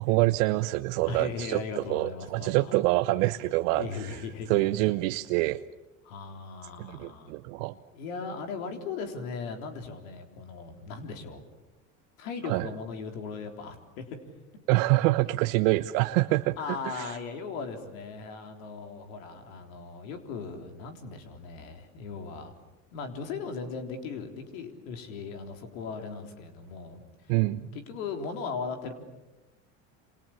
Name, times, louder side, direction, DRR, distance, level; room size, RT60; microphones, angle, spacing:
voice 1, 0.0-1.6 1.9-4.2 4.5-5.6 6.8-7.7 12.4-12.7 14.7-17.1 27.3-27.7, right 19 dB, 70° right, 10 dB, 0.9 m, -26 dB
voice 2, 1.1-2.7 3.7-4.7 6.0-7.3 7.9-11.4 12.2-14.0 16.6-22.5 22.9-27.3 27.7-28.9, left 5 dB, 75° left, 5 dB, 3.8 m, -38 dB
28.5 x 27.5 x 7.3 m, 1.0 s
hypercardioid pair, 80°, 40 cm